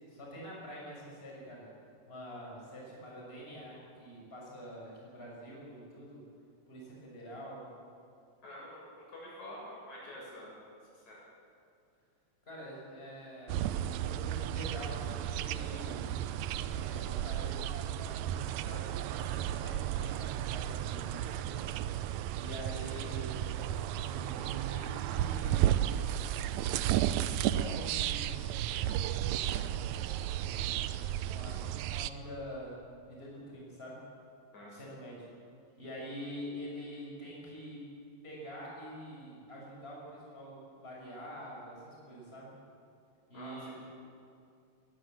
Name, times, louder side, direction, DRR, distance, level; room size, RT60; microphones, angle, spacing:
voice 1, 0.1-1.7 2.1-6.2 6.7-7.7 12.4-16.0 16.7-21.7 22.4-23.4 24.1-25.7 27.1-28.5 29.3-29.9 31.2-32.8 33.1-34.0 34.7-35.3 35.8-37.8 38.2-42.5 43.3-43.7, equal, 20° left, -3 dB, 5.8 m, -46 dB
voice 2, 8.4-10.6 10.9-11.2 34.5-34.8 43.3-43.7, left 1 dB, 75° left, -5 dB, 8.7 m, -47 dB
sound 1, 13.5-32.1, right 11 dB, 80° right, 1.9 m, -33 dB
21.0 x 19.5 x 7.7 m, 2.4 s
omnidirectional pair, 3.3 m